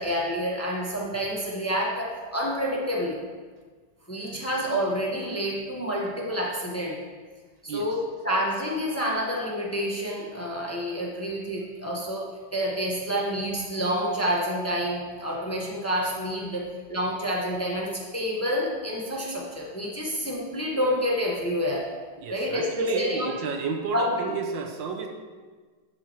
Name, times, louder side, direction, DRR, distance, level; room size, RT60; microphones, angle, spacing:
voice 1, 0.0-3.2 4.1-7.0 7.6-12.2 12.5-21.9 22.3-23.3 23.9-24.1, equal, 10° left, -3 dB, 1.3 m, -28 dB
voice 2, 22.2-25.1, right 5 dB, 80° right, 3 dB, 1.8 m, -31 dB
11.5 x 7.4 x 4.7 m, 1.4 s
omnidirectional pair, 2.0 m